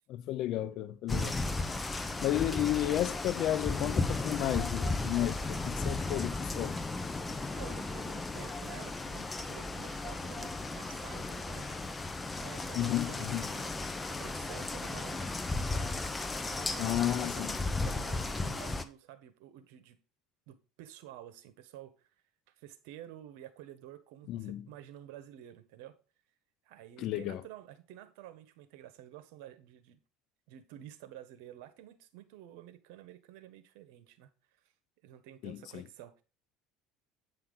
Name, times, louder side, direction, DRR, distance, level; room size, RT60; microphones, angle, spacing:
voice 1, 0.1-1.4 2.2-6.8 12.7-13.5 16.8-17.5 24.3-24.6 27.0-27.4 35.4-35.8, left 13 dB, 60° left, 0.7 m, -32 dB
sound 1, 1.1-18.8, left 2 dB, 15° left, 0.9 m, -35 dB
voice 2, 2.4-2.9 7.6-11.8 12.3-13.7 14.1-16.1 16.5-20.0 20.5-21.9 22.6-26.0 26.6-30.0 30.5-34.3 35.0-36.2, right 12 dB, 80° right, 1.3 m, -51 dB
9.1 x 5.8 x 4.0 m
supercardioid pair, 110°, 0 cm